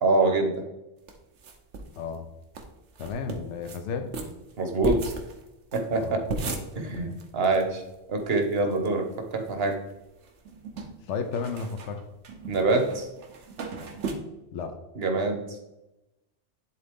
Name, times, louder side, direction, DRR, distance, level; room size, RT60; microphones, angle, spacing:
voice 1, 0.0-0.6 4.6-5.0 5.7-6.2 6.7-7.8 8.1-9.1 9.3-9.8 12.5-13.1 15.0-15.4, right 3 dB, 60° right, 5 dB, 1.2 m, -25 dB
sound 1, 1.1-2.0 2.2-2.3 2.5-2.7 3.0-3.8 4.1-7.6 7.9-8.0 8.2-8.9 9.3-9.9 10.2-14.1, right 3 dB, 80° right, 1.2 m, -36 dB
voice 2, 2.0-2.3 3.0-4.1 5.9-6.6 6.8-7.2 11.1-12.0 14.5-14.8, left 5 dB, 90° left, 6 dB, 1.0 m, -33 dB
10.5 x 3.8 x 3.6 m, 0.95 s
omnidirectional pair, 1.2 m